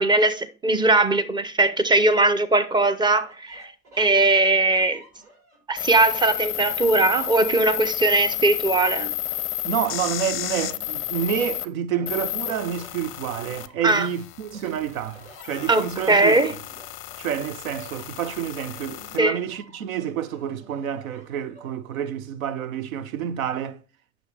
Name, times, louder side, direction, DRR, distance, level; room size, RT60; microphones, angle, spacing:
voice 1, 0.0-3.7 4.0-5.0 5.7-9.1 13.8-14.1 15.7-16.5 19.2-19.4, right 2 dB, 10° right, 0.6 m, -20 dB
sound 1, 3.2-6.6 7.1-8.8 9.2-10.1 10.6-14.2 14.5-22.1, right 2 dB, 40° right, 5.0 m, -50 dB
sound 2, 5.8-11.6 12.1-19.2, left 16 dB, 30° left, 0.5 m, -32 dB
voice 2, 9.6-16.4 17.2-23.8, right 9 dB, 75° right, 0.7 m, -29 dB
9.3 x 6.1 x 3.3 m
hypercardioid pair, 80°, 42 cm